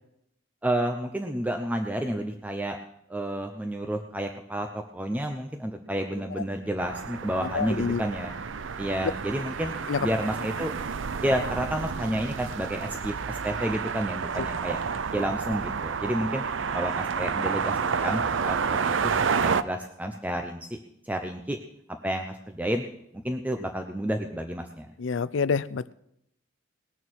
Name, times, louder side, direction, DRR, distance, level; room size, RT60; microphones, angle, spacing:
voice 1, 0.6-2.8 3.1-8.3 8.8-9.8 10.0-10.7 11.2-14.8 15.1-16.4 16.7-20.8 21.0-21.6 22.0-22.8 23.1-24.9, right 1 dB, 10° right, 4 dB, 0.7 m, -30 dB
sound 1, 6.8-19.6, right 6 dB, 80° right, 0.6 m, -30 dB
voice 2, 7.5-8.0 9.9-10.0 25.0-25.9, left 5 dB, 75° left, 18 dB, 0.5 m, -27 dB
20.0 x 6.9 x 6.3 m, 0.77 s
head